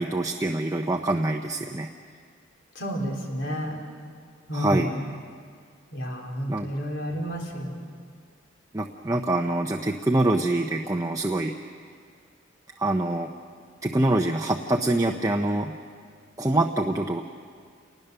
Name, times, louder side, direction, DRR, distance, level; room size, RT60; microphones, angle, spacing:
voice 1, 0.0-1.9 4.5-4.9 6.5-6.7 8.7-11.5 12.8-13.3 13.8-15.7 16.4-17.2, right 2 dB, 15° right, 3 dB, 0.7 m, -25 dB
voice 2, 2.7-3.8 4.5-5.1 5.9-7.8, equal, 65° left, 1 dB, 3.7 m, -31 dB
28.5 x 20.0 x 6.8 m, 2.1 s
head